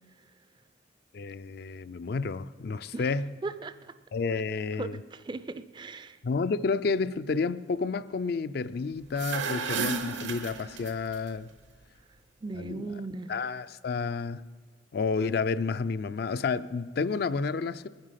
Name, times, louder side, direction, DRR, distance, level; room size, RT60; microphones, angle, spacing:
voice 1, 1.1-3.3 4.1-5.0 6.2-11.5 12.5-12.8 13.3-14.5 14.9-17.9, left 4 dB, 55° left, 0.4 m, -30 dB
voice 2, 3.4-3.9 4.8-6.2 12.4-13.3, right 3 dB, 25° right, 0.4 m, -37 dB
sound 1, 9.0-11.2, right 5 dB, 75° right, 1.0 m, -33 dB
21.5 x 9.9 x 5.7 m
head